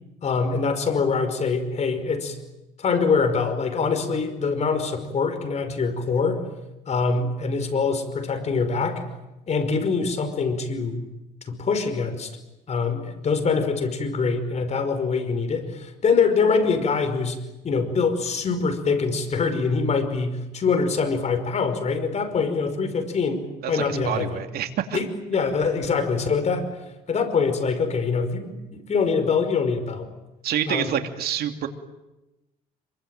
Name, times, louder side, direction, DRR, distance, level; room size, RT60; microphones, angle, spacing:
voice 1, 0.2-2.4 2.8-6.4 6.9-9.0 9.5-11.0 11.5-12.3 12.7-17.4 17.6-24.4 24.9-26.8 27.1-30.1 30.7-31.0, left 5 dB, 40° left, 8 dB, 5.3 m, -24 dB
voice 2, 23.6-25.0 30.4-31.7, right 10 dB, 65° right, 6 dB, 2.8 m, -27 dB
27.0 x 24.0 x 9.2 m, 0.96 s
cardioid pair, 110°, 17 cm